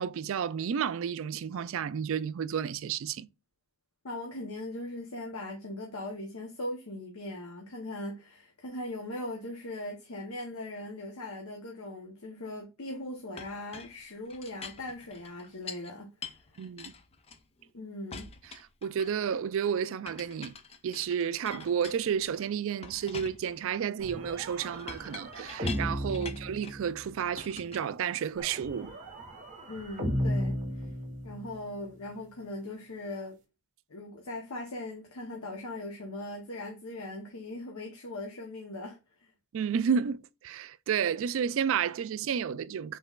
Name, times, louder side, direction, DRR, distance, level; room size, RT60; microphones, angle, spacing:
voice 1, 0.0-3.3 16.6-16.9 18.8-20.5 20.8-28.9 39.5-43.0, right 7 dB, 65° right, 0.3 m, -31 dB
voice 2, 4.0-16.1 17.7-18.3 26.1-26.3 29.7-30.9 31.2-33.3 33.9-39.3, left 1 dB, 85° left, 0.9 m, -40 dB
Chink clink, 13.4-15.9 16.2-17.7 18.1-19.3 20.1-22.4 22.8-26.9 27.4-28.5, left 5 dB, 30° left, 0.5 m, -46 dB
sound 1, 24.0-27.3 28.4-31.6, equal, 35° right, 1.3 m, -35 dB
5.4 x 3.8 x 2.4 m
head